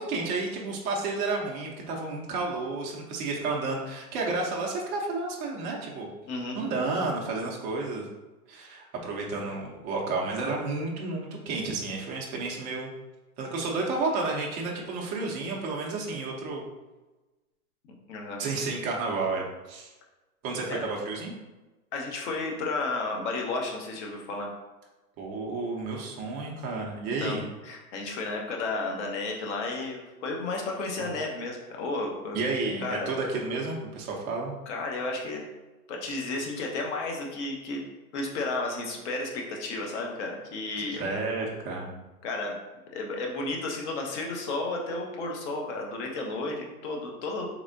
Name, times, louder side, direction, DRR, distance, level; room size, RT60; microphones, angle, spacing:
voice 1, 0.0-6.1 6.5-8.1 8.5-12.9 13.4-16.7 18.4-19.9 20.4-21.3 25.2-27.4 31.0-31.1 32.3-34.5 40.9-41.9, right 3 dB, 20° right, -1 dB, 0.4 m, -31 dB
voice 2, 6.2-6.6 18.1-18.4 20.7-20.8 21.9-24.5 27.2-32.4 32.8-33.1 34.7-35.4 35.9-37.8 38.1-41.1 42.2-42.6 42.9-47.5, left 3 dB, 50° left, 0 dB, 1.0 m, -32 dB
3.5 x 3.3 x 2.5 m, 1.1 s
hypercardioid pair, 120°, 45 cm